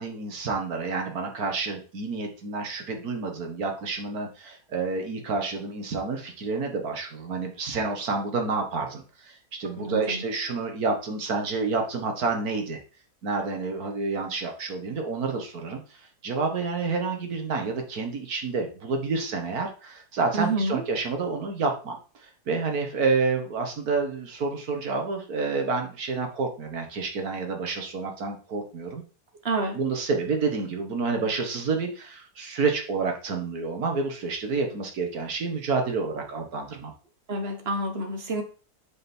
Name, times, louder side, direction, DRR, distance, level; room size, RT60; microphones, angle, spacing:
voice 1, 0.0-12.8 13.2-15.8 16.2-22.0 22.2-29.0 29.7-36.9, right 4 dB, 65° right, 3 dB, 2.1 m, -29 dB
voice 2, 9.7-10.2 20.3-20.8 29.4-29.8 37.3-38.4, right 2 dB, 40° right, 5 dB, 1.6 m, -28 dB
7.8 x 5.5 x 4.5 m, 0.37 s
omnidirectional pair, 1.7 m